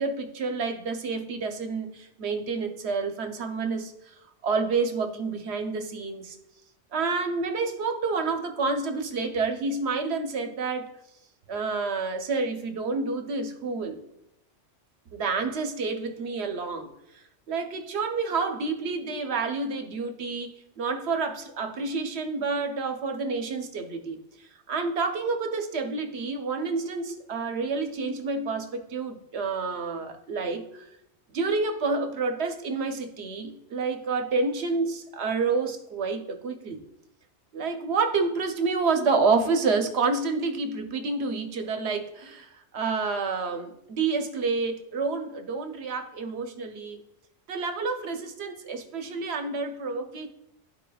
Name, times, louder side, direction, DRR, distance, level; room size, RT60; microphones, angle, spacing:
voice 1, 0.0-4.1 4.4-6.4 6.9-10.9 11.5-14.0 15.1-16.9 17.5-30.9 31.3-36.8 37.5-47.0 47.5-50.3, right 4 dB, 65° right, 6 dB, 1.0 m, -29 dB
12.0 x 4.9 x 2.3 m, 0.83 s
omnidirectional pair, 1.2 m